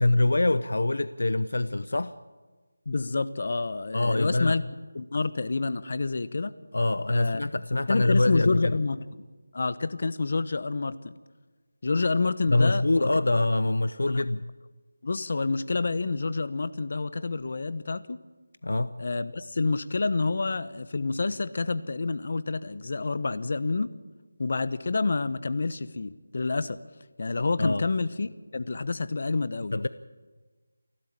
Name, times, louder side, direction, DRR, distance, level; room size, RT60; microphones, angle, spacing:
voice 1, 0.0-2.1 3.9-4.6 6.7-8.7 12.5-14.4 18.6-18.9 27.6-27.8 29.7-29.9, left 2 dB, 75° left, 14 dB, 0.8 m, -24 dB
voice 2, 2.9-4.6 4.9-6.5 7.1-7.4 7.9-9.0 9.5-11.1 11.8-13.1 14.1-14.2 15.0-18.2 19.0-23.9 24.4-26.8 27.2-29.8, left 3 dB, 45° left, 15 dB, 1.0 m, -28 dB
29.0 x 12.0 x 8.8 m, 1.3 s
figure-of-eight pair, 170°, 0 cm